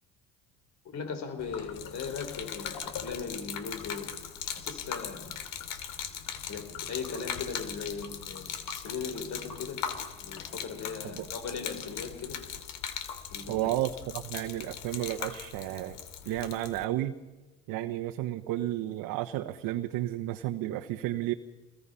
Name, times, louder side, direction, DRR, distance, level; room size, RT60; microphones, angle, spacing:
voice 1, 0.8-4.1 4.4-5.3 5.7-5.8 6.5-9.8 10.2-12.4 13.3-13.6, left 5 dB, 50° left, 7 dB, 4.7 m, -38 dB
Gurgling / Liquid, 1.4-16.8, left 8 dB, 70° left, 2.6 m, -39 dB
voice 2, 13.5-16.0 16.2-17.2 17.7-21.3, right 14 dB, 70° right, 6 dB, 1.2 m, -32 dB
28.0 x 21.0 x 5.7 m, 1.2 s
supercardioid pair, 85°, 34 cm